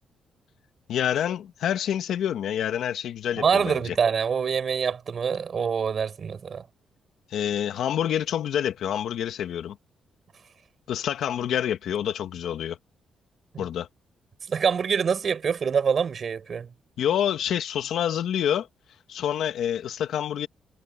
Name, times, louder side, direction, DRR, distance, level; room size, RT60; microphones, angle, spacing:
voice 1, 0.9-3.9 7.3-9.8 10.9-12.8 13.6-13.9 17.0-18.7 19.1-20.5, left 10 dB, 75° left, 1.7 m, -27 dB
voice 2, 3.4-6.7 13.5-13.6 14.5-16.7, right 6 dB, 40° right, 5.4 m, -25 dB
cardioid pair, 145°, 0 cm